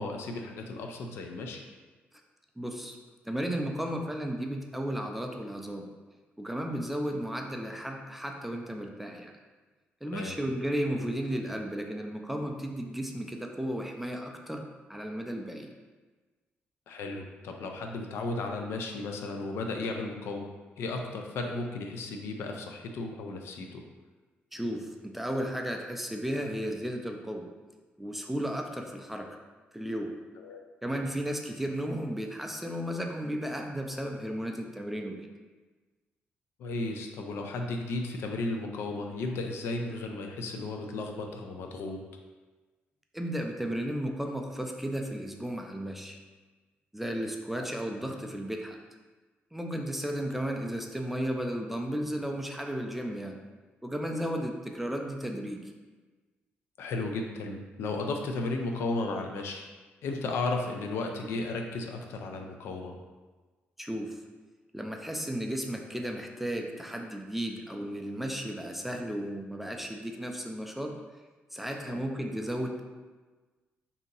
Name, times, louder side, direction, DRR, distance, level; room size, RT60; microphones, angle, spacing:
voice 1, 0.0-1.6 10.1-10.4 16.9-20.5 20.8-23.8 30.4-30.6 36.6-42.0 47.5-47.6 56.8-59.7 60.0-63.0 71.8-72.0, left 2 dB, 80° left, 3 dB, 0.4 m, -34 dB
voice 2, 2.6-3.0 3.3-5.9 6.4-9.3 10.0-15.7 24.5-27.5 28.0-29.4 29.7-30.1 30.8-35.3 43.1-46.2 46.9-48.8 49.5-53.4 53.8-55.6 63.8-64.2 64.7-70.9 71.5-72.8, equal, 5° right, 2 dB, 0.3 m, -34 dB
2.8 x 2.7 x 3.8 m, 1.3 s
cardioid pair, 115°, 4 cm